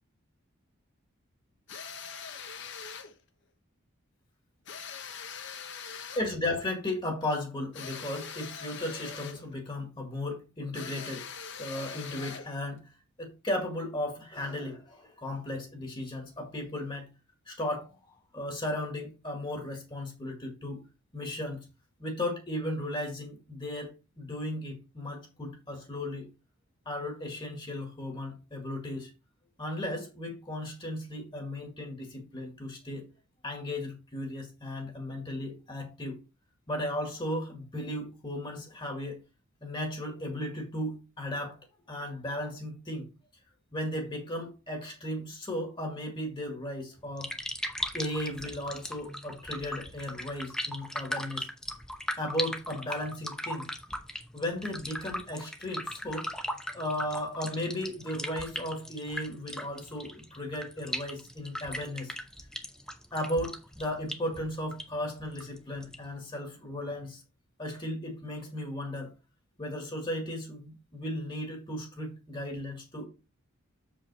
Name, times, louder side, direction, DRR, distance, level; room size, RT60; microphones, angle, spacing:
sound 1, 1.7-3.1 4.7-6.3 7.7-9.5 10.7-12.6, left 6 dB, 55° left, 1.0 m, -42 dB
voice 1, 6.1-11.2 11.6-12.8 13.2-17.1 17.5-17.9 18.3-20.8 21.1-21.6 22.0-23.9 24.2-26.3 26.8-29.1 29.6-33.0 33.4-36.2 36.7-39.2 39.6-41.6 41.9-43.1 43.7-47.3 47.9-51.5 52.2-53.7 54.3-56.3 56.7-62.1 63.1-67.2 67.6-69.1 69.6-73.1, left 1 dB, 20° left, 1.8 m, -35 dB
sound 2, 47.0-66.1, equal, 5° left, 0.8 m, -39 dB
7.4 x 5.1 x 4.1 m
head